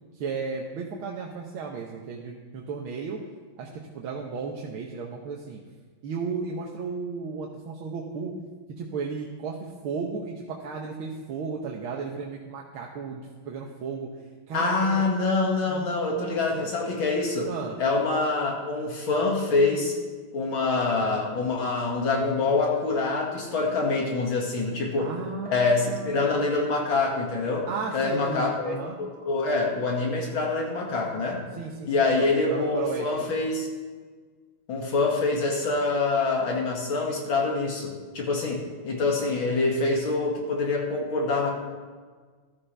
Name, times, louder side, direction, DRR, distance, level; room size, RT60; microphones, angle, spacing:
voice 1, 0.1-3.2 3.6-5.6 6.0-8.3 8.8-14.1 14.5-15.0 15.7-16.7 17.5-17.8 25.0-26.5 27.7-29.0 31.5-33.3, right 5 dB, 90° right, -1 dB, 1.9 m, -34 dB
voice 2, 14.5-17.5 17.8-20.0 20.3-25.1 25.4-27.7 27.9-31.4 31.8-33.7 34.7-41.5, left 3 dB, 75° left, -1 dB, 2.8 m, -25 dB
14.5 x 12.5 x 3.4 m, 1.5 s
omnidirectional pair, 2.2 m